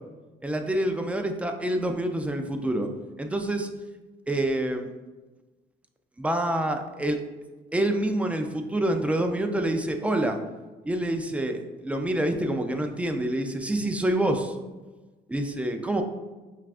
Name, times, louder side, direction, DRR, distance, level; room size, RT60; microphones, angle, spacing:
voice 1, 0.4-2.9 3.2-3.7 4.3-4.9 6.2-7.2 7.7-10.4 10.9-14.5 15.3-16.0, right 1 dB, 10° right, 5 dB, 0.3 m, -27 dB
5.6 x 2.4 x 2.4 m, 1.2 s
cardioid pair, 110°, 17 cm